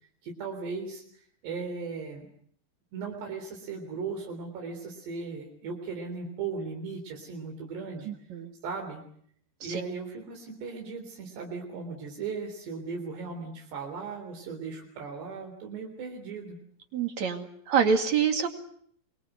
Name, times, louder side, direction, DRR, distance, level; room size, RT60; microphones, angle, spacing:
voice 1, 0.2-2.3 2.9-8.1 8.6-9.0 9.6-16.6, right 4 dB, 85° right, 2 dB, 5.8 m, -37 dB
voice 2, 8.0-8.5 9.6-9.8 16.9-18.5, right 6 dB, 50° right, 6 dB, 3.2 m, -26 dB
27.5 x 23.5 x 8.1 m, 0.65 s
omnidirectional pair, 4.7 m